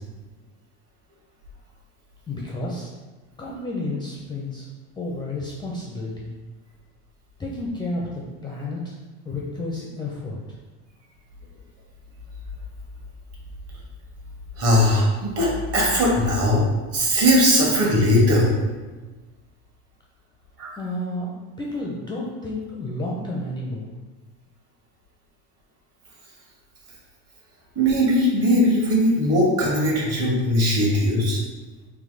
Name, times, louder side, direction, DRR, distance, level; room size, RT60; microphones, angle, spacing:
voice 1, 2.3-2.9 3.4-4.7 5.0-6.4 7.4-9.0 9.3-10.4 20.8-21.3 21.6-23.9, left 2 dB, 10° left, -3 dB, 0.4 m, -31 dB
voice 2, 14.6-16.6 16.9-18.5 20.6-20.7 27.7-31.4, equal, 40° right, -3 dB, 1.4 m, -19 dB
3.4 x 2.9 x 3.9 m, 1.3 s
supercardioid pair, 120°, 37 cm